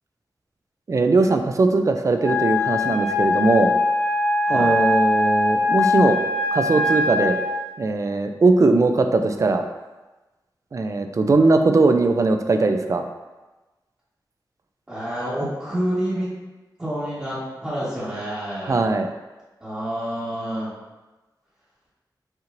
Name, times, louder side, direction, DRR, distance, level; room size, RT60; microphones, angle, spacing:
voice 1, 0.9-3.7 4.5-6.2 6.5-7.4 7.8-9.6 10.7-13.0 18.7-19.1, right 3 dB, 40° right, 6 dB, 0.3 m, -19 dB
Wind instrument woodwind instrument, 2.2-7.6, left 2 dB, 20° left, 0.6 m, -21 dB
voice 2, 14.9-16.3 16.8-18.9 19.6-20.7, equal, 20° right, -14 dB, 1.4 m, -28 dB
5.5 x 3.0 x 2.5 m, 1.1 s
wide cardioid pair, 110°, 8 cm